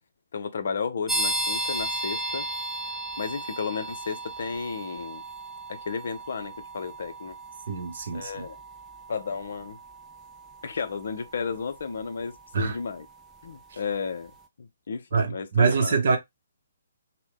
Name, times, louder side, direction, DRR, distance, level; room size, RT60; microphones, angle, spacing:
voice 1, 0.3-2.5 3.2-5.2 5.7-7.4 8.1-8.6 9.1-9.8 10.6-13.1 13.4-14.3 14.6-16.0, left 5 dB, 55° left, 0.5 m, -33 dB
sound 1, 1.1-13.6, right 1 dB, ahead, 0.4 m, -35 dB
voice 2, 7.7-8.5 12.5-12.8 13.7-13.8 15.1-16.2, right 5 dB, 50° right, 0.7 m, -24 dB
2.7 x 2.1 x 3.4 m
figure-of-eight pair, 130°, 0 cm